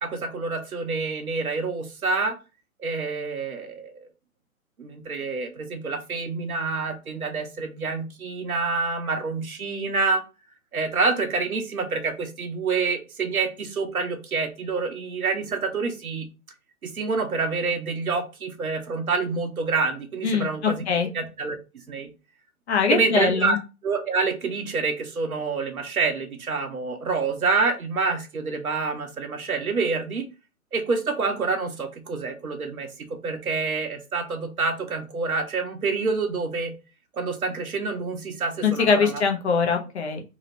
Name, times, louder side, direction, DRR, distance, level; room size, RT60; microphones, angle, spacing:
voice 1, 0.0-2.4 2.8-4.1 4.8-10.2 10.7-16.3 16.8-20.8 21.1-21.6 21.9-22.1 22.9-23.6 23.8-30.3 30.7-36.7 37.1-39.2, right 4 dB, 75° right, 6 dB, 0.9 m, -27 dB
voice 2, 22.7-23.6 38.6-40.2, left 5 dB, 50° left, 4 dB, 0.8 m, -22 dB
2.9 x 2.8 x 2.8 m, 0.30 s
figure-of-eight pair, 120°, 43 cm